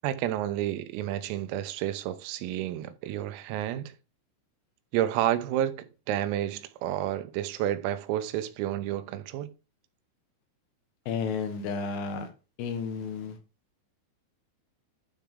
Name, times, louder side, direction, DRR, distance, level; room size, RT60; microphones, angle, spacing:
voice 1, 0.0-3.9 4.9-9.5, right 12 dB, 90° right, 3.5 m, -30 dB
voice 2, 11.1-12.3 12.6-13.4, left 5 dB, 80° left, 3.9 m, -32 dB
11.5 x 4.6 x 3.7 m
omnidirectional pair, 5.8 m